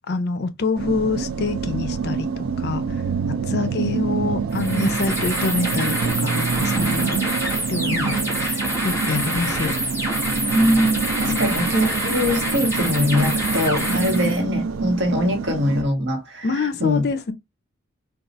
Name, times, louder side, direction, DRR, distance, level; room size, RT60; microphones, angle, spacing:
voice 1, 0.1-2.8 3.4-7.3 7.7-9.7 11.3-11.5 16.4-17.3, left 4 dB, 50° left, 0.5 m, -26 dB
sound 1, 0.7-15.8, right 5 dB, 80° right, 0.4 m, -26 dB
sound 2, 4.5-14.4, equal, 10° right, 1.6 m, -27 dB
voice 2, 10.5-17.0, left 1 dB, 60° right, 1.1 m, -22 dB
4.1 x 2.3 x 2.5 m
head